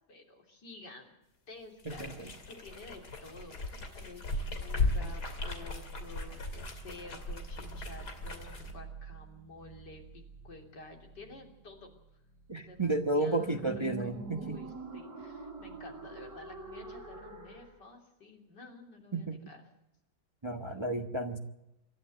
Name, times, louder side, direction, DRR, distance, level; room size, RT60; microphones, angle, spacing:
voice 1, 0.1-1.2 1.5-11.9 12.6-14.1 14.4-19.6, left 3 dB, 85° left, 2 dB, 3.9 m, -51 dB
sound 1, 1.8-8.7, left 2 dB, 70° left, 3.3 m, -37 dB
voice 2, 1.8-2.3 12.5-14.6 19.1-19.4 20.4-21.4, right 2 dB, 20° right, 6 dB, 1.1 m, -32 dB
sound 2, 4.6-17.8, right 3 dB, 65° right, 5.3 m, -48 dB
26.0 x 13.5 x 7.8 m, 0.92 s
omnidirectional pair, 1.8 m